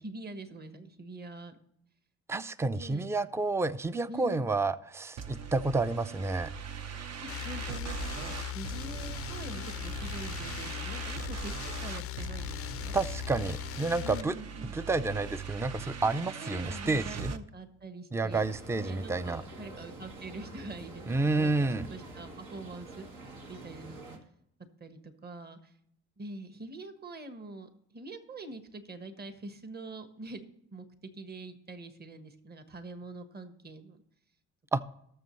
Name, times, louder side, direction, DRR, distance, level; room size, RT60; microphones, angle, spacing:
voice 1, 0.0-1.5 2.7-3.1 4.1-4.5 7.2-12.9 14.0-14.8 16.4-18.4 18.8-23.2 23.5-24.2 24.8-25.7 26.2-34.0, right 2 dB, 30° right, 8 dB, 1.3 m, -44 dB
voice 2, 2.3-6.5 12.9-14.3 14.7-17.3 18.1-19.4 21.1-21.9 34.7-34.8, right 3 dB, 10° right, 14 dB, 0.4 m, -30 dB
sound 1, 5.2-17.4, right 6 dB, 60° right, 0.9 m, -41 dB
sound 2, 7.3-14.2, left 14 dB, 50° left, 0.4 m, -39 dB
sound 3, 18.3-24.2, right 2 dB, 80° right, 2.2 m, -47 dB
18.5 x 6.9 x 3.2 m, 0.73 s
cardioid pair, 90°, 30 cm